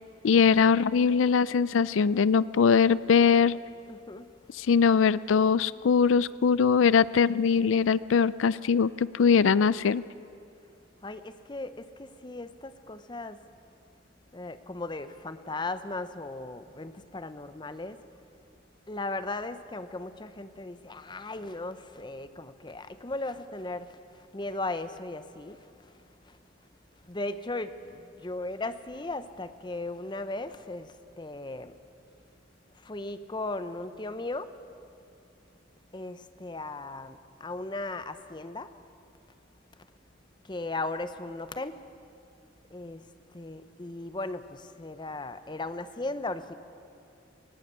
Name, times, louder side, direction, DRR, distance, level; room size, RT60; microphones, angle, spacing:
voice 1, 0.2-3.6 4.6-10.0, left 6 dB, 85° left, 19 dB, 0.4 m, -22 dB
voice 2, 3.9-4.3 11.0-13.4 14.3-18.0 18.9-23.9 24.3-25.6 27.1-31.7 32.8-34.5 35.9-38.7 40.5-41.8 42.7-43.0 43.3-46.5, left 2 dB, 25° left, 12 dB, 0.7 m, -37 dB
19.0 x 17.5 x 8.2 m, 2.7 s
head